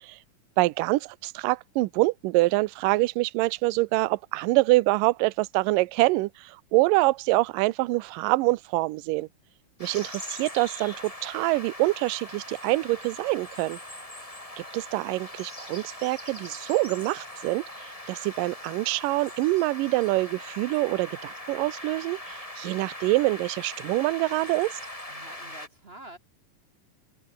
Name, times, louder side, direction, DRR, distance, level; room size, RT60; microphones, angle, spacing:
voice 1, 0.6-9.3 9.8-13.8 14.6-24.8, right 21 dB, 80° right, 2.3 m, -25 dB
sound 1, 9.8-25.7, left 1 dB, 10° left, 4.3 m, -41 dB
voice 2, 25.1-26.2, right 1 dB, 50° right, 0.7 m, -46 dB
omnidirectional pair, 4.0 m